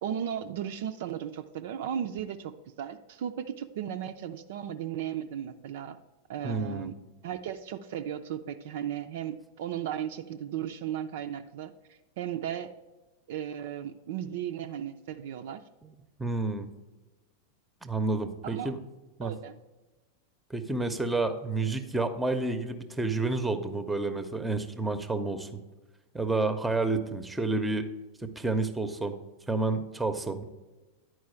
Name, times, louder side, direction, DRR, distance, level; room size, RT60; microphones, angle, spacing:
voice 1, 0.0-2.5 2.8-6.0 6.3-6.9 7.2-12.7 13.3-15.6 18.4-18.7 19.2-19.5, right 10 dB, 55° right, 7 dB, 0.4 m, -35 dB
voice 2, 6.4-6.9 16.2-16.7 17.8-18.8 19.2-19.3 20.5-25.6 26.1-27.9 28.2-29.1 29.5-30.4, right 3 dB, 5° right, 9 dB, 0.7 m, -30 dB
10.0 x 4.7 x 4.4 m, 1.1 s
figure-of-eight pair, 90°, 0 cm